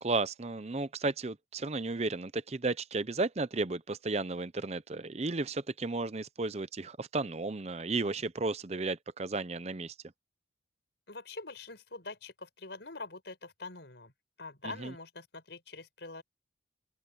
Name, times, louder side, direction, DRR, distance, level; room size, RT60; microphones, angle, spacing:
voice 1, 0.0-9.9 14.6-14.9, right 3 dB, 35° right, 0.6 m, -33 dB
voice 2, 11.1-14.1 14.4-16.2, left 3 dB, 70° left, 5.1 m, -44 dB
open air
head